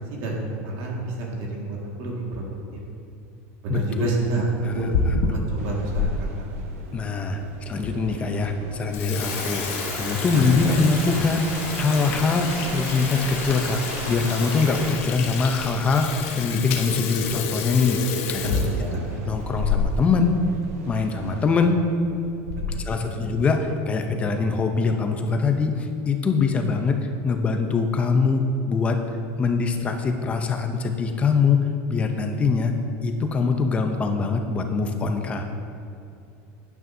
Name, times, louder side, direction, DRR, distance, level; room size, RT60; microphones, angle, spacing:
voice 1, 0.1-2.5 3.6-4.5 4.7-6.1 10.3-10.7 18.4-19.0 22.6-23.1, right 2 dB, 50° right, -2 dB, 1.9 m, -29 dB
voice 2, 3.7-5.1 6.9-9.6 9.9-11.5 11.8-18.0 18.3-18.6 19.3-20.4 20.9-21.8 22.8-29.0 29.4-32.8 33.0-35.4, left 4 dB, 15° left, 5 dB, 0.6 m, -23 dB
Water tap faucet / Sink (filling or washing), 4.6-6.1 6.6-6.7 7.4-7.5 7.8-7.9 8.3-8.5 8.8-20.2 20.5-20.6 20.9-21.0 21.8-22.1 22.5-22.9, left 5 dB, 65° left, 1.1 m, -29 dB
sound 1, 5.6-21.6, right 4 dB, 80° right, 1.1 m, -43 dB
sound 2, 9.2-14.9, right 1 dB, 25° right, 1.8 m, -34 dB
11.5 x 9.5 x 2.7 m, 2.6 s
supercardioid pair, 170°, 8 cm